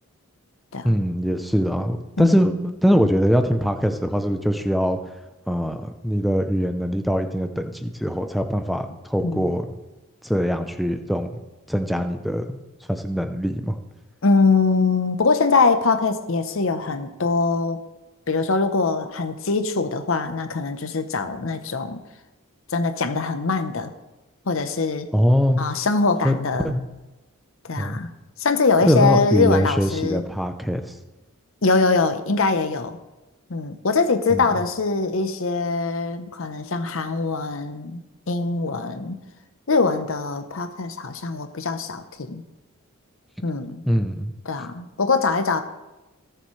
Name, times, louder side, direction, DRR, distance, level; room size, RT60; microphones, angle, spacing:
voice 1, 0.8-5.0 5.5-9.7 10.2-11.3 11.7-12.6 12.9-13.8 25.1-25.6 26.2-26.4 26.6-26.8 27.8-28.0 28.9-30.8 34.3-34.4 43.9-44.3, equal, ahead, 7 dB, 0.6 m, -22 dB
voice 2, 9.2-9.6 12.0-12.1 14.2-17.8 18.3-22.0 22.7-23.9 24.5-25.1 25.6-26.7 27.6-28.1 28.4-30.2 31.6-33.0 33.5-38.0 38.3-39.2 39.7-42.4 43.4-43.8 44.5-45.6, left 4 dB, 60° left, 8 dB, 0.8 m, -22 dB
17.5 x 6.9 x 3.2 m, 1.1 s
head